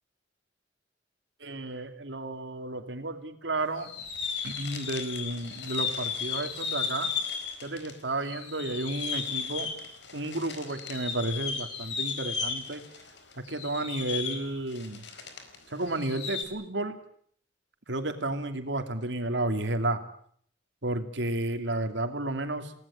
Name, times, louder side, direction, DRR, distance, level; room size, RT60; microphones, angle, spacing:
voice 1, 1.4-3.9 4.4-7.1 7.6-9.7 10.1-12.8 13.4-15.0 15.7-17.0 17.9-20.0 20.8-22.8, right 2 dB, 90° right, 7 dB, 2.8 m, -32 dB
sound 1, 3.8-7.9 8.2-15.6 15.8-16.4, left 6 dB, 85° left, 4.5 m, -35 dB
28.5 x 18.0 x 8.7 m, 0.63 s
head